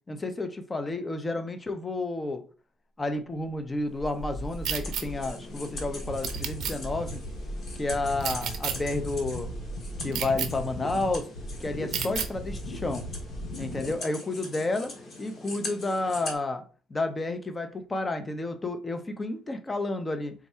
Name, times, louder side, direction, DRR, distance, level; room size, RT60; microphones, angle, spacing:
voice 1, 0.1-2.4 3.0-7.2 7.7-9.5 10.0-11.3 11.6-13.0 13.6-14.9 15.2-16.6 16.9-20.3, left 2 dB, 25° left, 8 dB, 0.6 m, -31 dB
sound 1, 4.0-13.9, equal, 80° left, 0.9 m, -37 dB
sound 2, 4.0-16.3, left 2 dB, 55° left, 1.3 m, -42 dB
sound 3, 4.7-5.0 6.2-6.7 8.2-8.8 10.1-10.5 11.9-12.3, right 9 dB, 75° right, 0.5 m, -31 dB
3.6 x 2.2 x 4.2 m, 0.38 s
cardioid pair, 90°, 0 cm